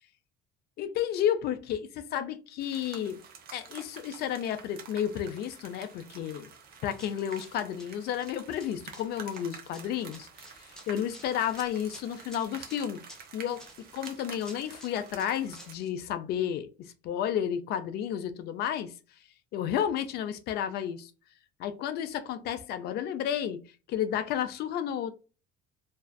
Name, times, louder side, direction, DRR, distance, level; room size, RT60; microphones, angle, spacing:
voice 1, 0.8-3.2 3.5-6.5 6.8-10.3 10.9-13.0 13.3-18.9 19.5-21.1 21.6-23.6 23.9-25.1, left 9 dB, 50° left, 0.4 m, -32 dB
sound 1, 2.6-15.7, right 6 dB, 45° right, 0.7 m, -49 dB
Run, 6.7-15.9, equal, 5° left, 0.6 m, -53 dB
2.5 x 2.3 x 2.2 m
cardioid pair, 145°, 21 cm